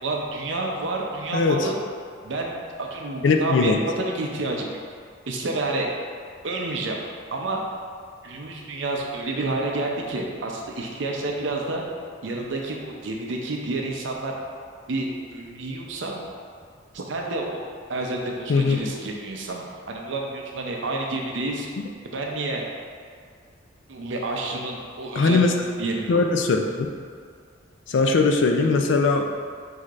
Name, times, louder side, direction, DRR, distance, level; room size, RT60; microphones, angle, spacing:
voice 1, 0.0-1.8 2.2-4.8 5.3-5.9 6.4-7.0 7.3-7.6 8.2-11.8 12.2-14.3 14.9-16.2 16.9-17.6 17.9-21.7 22.1-22.6 23.9-25.5 25.8-26.1, right 2 dB, 70° right, 0 dB, 0.6 m, -29 dB
voice 2, 1.3-1.7 3.2-3.8 18.5-18.8 25.1-25.5 26.1-26.9 27.9-29.2, left 3 dB, 65° left, 3 dB, 0.4 m, -20 dB
6.2 x 2.8 x 2.4 m, 2.1 s
head